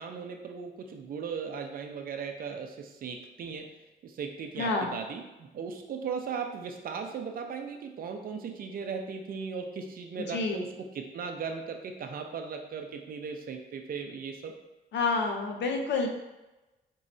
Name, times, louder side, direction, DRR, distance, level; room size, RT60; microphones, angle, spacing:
voice 1, 0.0-3.7 4.0-14.6, right 6 dB, 55° right, 4 dB, 0.5 m, -37 dB
voice 2, 4.6-5.0 10.3-10.7 14.9-16.1, left 3 dB, 80° left, 3 dB, 0.6 m, -28 dB
4.6 x 3.1 x 2.6 m, 1.1 s
wide cardioid pair, 155°, 18 cm